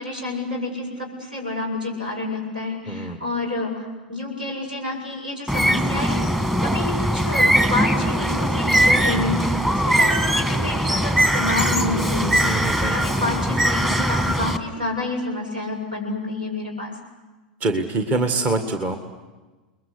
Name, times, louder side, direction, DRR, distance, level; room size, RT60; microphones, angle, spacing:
voice 1, 0.0-6.3 6.6-17.0, left 2 dB, 80° right, 2 dB, 7.5 m, -29 dB
voice 2, 2.9-3.2 12.4-13.0 17.6-19.0, right 3 dB, 30° right, 7 dB, 1.9 m, -24 dB
Bird, 5.5-14.6, equal, 10° right, 1.8 m, -21 dB
30.0 x 21.5 x 8.2 m, 1.2 s
figure-of-eight pair, 90°, 5 cm